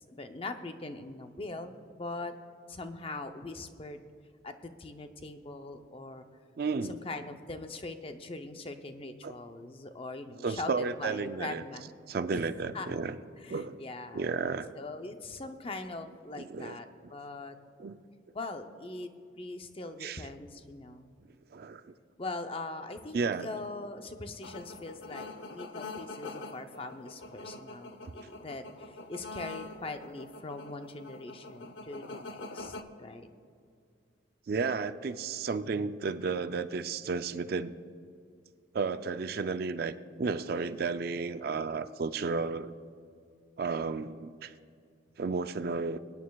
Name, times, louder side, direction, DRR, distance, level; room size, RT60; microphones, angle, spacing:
voice 1, 0.1-2.3 2.7-4.0 4.4-6.2 6.8-11.8 12.3-12.5 12.7-13.0 13.4-14.3 14.8-17.6 18.3-19.1 19.4-21.1 22.2-33.3, left 2 dB, 30° left, 7 dB, 0.6 m, -41 dB
voice 2, 6.6-7.0 9.2-9.3 10.4-11.6 12.1-13.2 13.5-13.8 14.1-14.7 16.4-16.8 17.8-18.0 20.0-20.2 21.5-21.9 23.1-23.5 34.5-37.7 38.7-42.7 43.6-44.5 45.2-46.0, right 4 dB, 50° right, 11 dB, 0.4 m, -33 dB
sound 1, 24.4-32.8, left 2 dB, 75° left, 0.7 m, -45 dB
24.5 x 9.4 x 2.3 m, 2.3 s
head